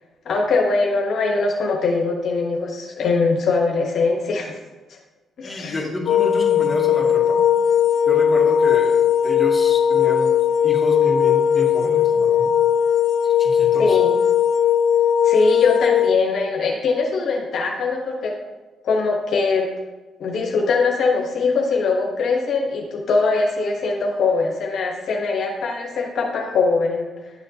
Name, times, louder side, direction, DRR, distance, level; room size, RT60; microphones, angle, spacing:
voice 1, 0.2-4.6 4.9-5.0 5.4-5.8 13.8-14.1 15.2-18.4 18.8-19.7 20.2-27.1, left 4 dB, 65° left, 0 dB, 1.0 m, -21 dB
voice 2, 5.4-7.4 8.1-10.3 10.6-12.5 13.2-14.0, left 1 dB, 15° left, -3 dB, 2.2 m, -29 dB
sound 1, 6.1-16.1, left 8 dB, 90° left, 0.4 m, -18 dB
10.5 x 6.3 x 2.8 m, 1.2 s
cardioid pair, 90°, 0 cm